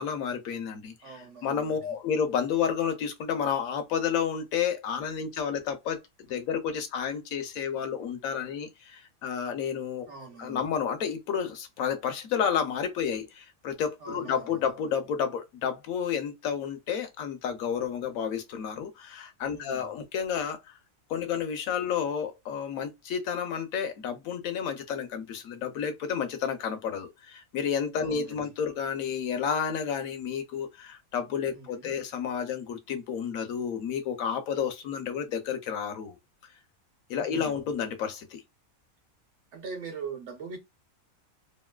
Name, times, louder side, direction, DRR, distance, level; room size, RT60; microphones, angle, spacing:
voice 1, 0.0-10.0 10.4-20.8 21.1-36.2 37.1-38.4, left 7 dB, 75° left, 1.1 m, -31 dB
voice 2, 1.0-1.9 10.1-10.7 14.0-14.5 19.5-19.9 28.0-28.5 31.5-31.9 37.2-37.6 39.5-40.6, right 5 dB, 60° right, 1.1 m, -42 dB
3.0 x 2.6 x 2.2 m
omnidirectional pair, 1.5 m